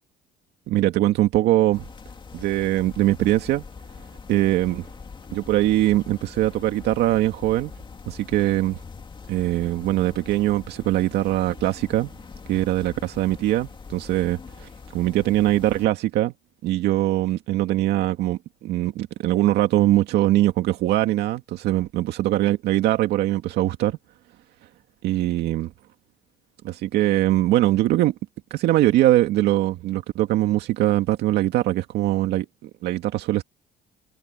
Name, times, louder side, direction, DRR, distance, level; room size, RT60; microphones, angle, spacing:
voice 1, 0.7-1.9 2.3-3.6 4.3-4.9 5.3-7.7 8.1-8.8 9.3-12.1 12.5-16.3 16.6-24.0 25.0-25.7 26.6-28.1 28.5-33.4, right 15 dB, 80° right, 2.1 m, -22 dB
sound 1, 1.7-15.9, left 5 dB, 30° left, 2.3 m, -42 dB
cardioid pair, 110°, 17 cm